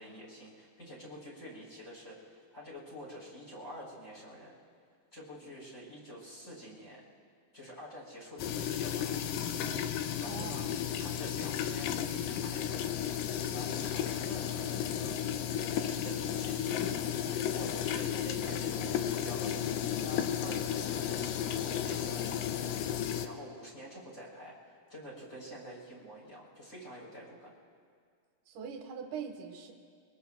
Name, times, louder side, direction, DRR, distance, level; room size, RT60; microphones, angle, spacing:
voice 1, 0.0-4.5 5.1-7.0 7.5-9.2 10.1-10.7 11.0-12.8 13.4-15.2 15.6-22.8 23.2-27.6, equal, 20° left, -5 dB, 3.7 m, -48 dB
sound 1, 8.4-23.3, left 9 dB, 80° left, 2.0 m, -33 dB
voice 2, 10.2-10.7 28.5-29.7, right 7 dB, 65° right, 2 dB, 2.5 m, -42 dB
23.5 x 23.0 x 2.4 m, 2.1 s
omnidirectional pair, 4.5 m